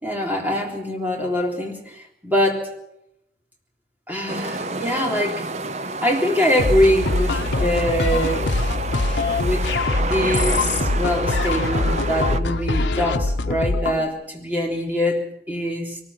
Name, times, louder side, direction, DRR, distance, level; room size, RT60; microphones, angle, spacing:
voice 1, 0.0-2.7 4.1-5.5 6.0-8.6 9.4-9.7 9.9-16.0, left 1 dB, 10° right, 0 dB, 3.5 m, -23 dB
sound 1, 4.3-12.4, right 3 dB, 40° right, 0.7 m, -29 dB
sound 2, 6.6-14.0, left 2 dB, 90° left, 0.9 m, -23 dB
23.0 x 20.5 x 5.8 m, 0.82 s
head